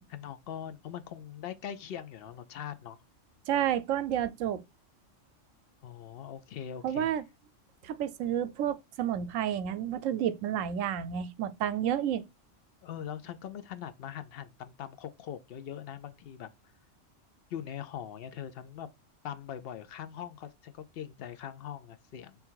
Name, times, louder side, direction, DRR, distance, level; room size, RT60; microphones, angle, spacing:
voice 1, 0.1-3.0 5.8-7.1 12.8-16.5 17.5-18.9 19.2-22.4, left 9 dB, 60° left, 0.7 m, -41 dB
voice 2, 3.5-4.6 6.8-7.2 7.8-12.2, right 10 dB, 85° right, 1.0 m, -30 dB
3.4 x 3.3 x 4.5 m
omnidirectional pair, 1.3 m